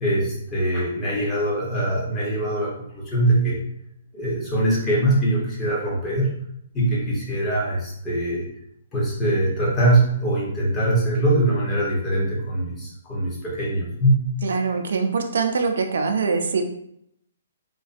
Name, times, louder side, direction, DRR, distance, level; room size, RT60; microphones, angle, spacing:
voice 1, 0.0-3.6 4.1-6.3 6.7-8.4 8.9-14.2, right 1 dB, 15° left, -5 dB, 0.8 m, -22 dB
voice 2, 14.4-16.6, right 4 dB, 75° right, 4 dB, 0.3 m, -23 dB
2.5 x 2.2 x 2.4 m, 0.73 s
hypercardioid pair, 155°, 0 cm